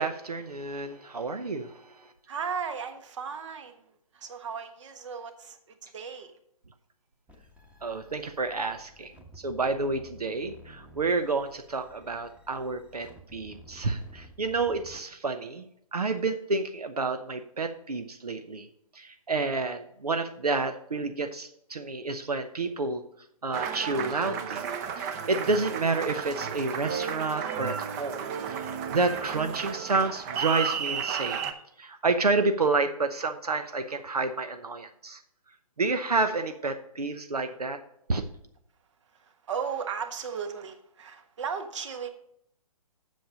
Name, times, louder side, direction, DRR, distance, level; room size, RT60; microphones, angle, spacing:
voice 1, 0.0-2.1 7.8-15.7 15.9-18.7 18.9-23.0 23.4-24.6 25.0-31.4 31.8-35.2 35.8-37.8 38.1-38.2, right 3 dB, 90° right, 8 dB, 0.8 m, -29 dB
voice 2, 2.3-6.3 39.0-42.1, right 6 dB, 50° right, 8 dB, 1.4 m, -36 dB
sound 1, 7.3-15.0, equal, 5° right, 1.1 m, -52 dB
Applause, 23.5-31.5, right 7 dB, 25° right, 0.7 m, -33 dB
7.7 x 7.3 x 5.0 m, 0.73 s
figure-of-eight pair, 135°, 19 cm